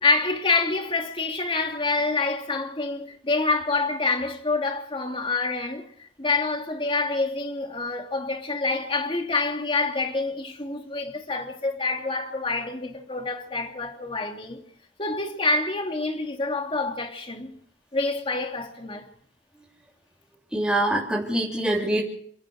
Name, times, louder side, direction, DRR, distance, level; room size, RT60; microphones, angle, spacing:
voice 1, 0.0-14.6 15.0-17.6 17.9-19.1, left 3 dB, 30° left, 2.8 m, -27 dB
voice 2, 20.5-22.0, right 1 dB, 5° right, 3.2 m, -24 dB
29.0 x 14.0 x 6.5 m
head